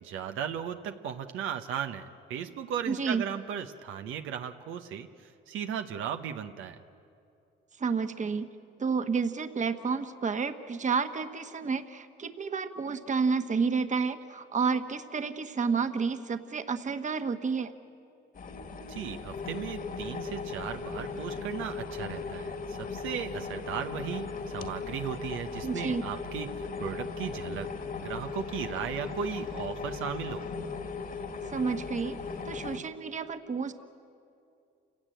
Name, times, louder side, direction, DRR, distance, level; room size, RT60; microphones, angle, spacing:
voice 1, 0.0-6.8 18.9-26.5 26.8-27.7 28.0-30.4, right 8 dB, 90° right, 7 dB, 1.0 m, -36 dB
voice 2, 2.9-3.3 7.8-8.5 8.8-17.7 25.6-26.0 31.5-32.2 32.4-33.7, right 5 dB, 40° right, 9 dB, 1.2 m, -30 dB
sound 1, 18.3-32.8, left 4 dB, 45° left, 1.9 m, -37 dB
28.5 x 16.5 x 9.1 m, 2.6 s
cardioid pair, 90°, 20 cm